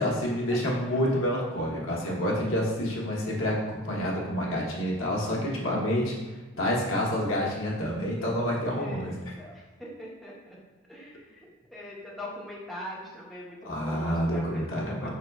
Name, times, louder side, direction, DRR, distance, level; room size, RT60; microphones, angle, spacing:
voice 1, 0.0-6.1 6.6-9.1 13.6-15.1, equal, 80° left, -4 dB, 1.1 m, -28 dB
voice 2, 8.7-10.6 10.9-15.1, left 1 dB, ahead, -8 dB, 0.8 m, -42 dB
5.4 x 4.0 x 2.3 m, 1.2 s
head